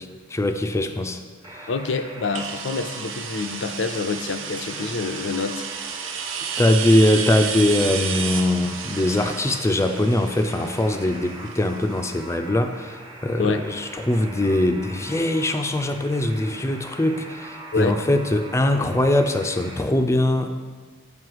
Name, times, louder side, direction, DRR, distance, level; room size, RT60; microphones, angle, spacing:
voice 1, 0.3-1.2 6.6-20.5, left 1 dB, 15° left, 6 dB, 0.4 m, -22 dB
Alarm, 1.4-19.8, right 2 dB, 20° right, 0.7 m, -41 dB
voice 2, 1.7-5.6 13.4-13.6 17.7-18.0, left 4 dB, 65° left, 9 dB, 0.5 m, -27 dB
sound 1, 2.3-12.0, right 7 dB, 85° right, 0.6 m, -32 dB
7.7 x 5.4 x 4.7 m, 1.4 s
head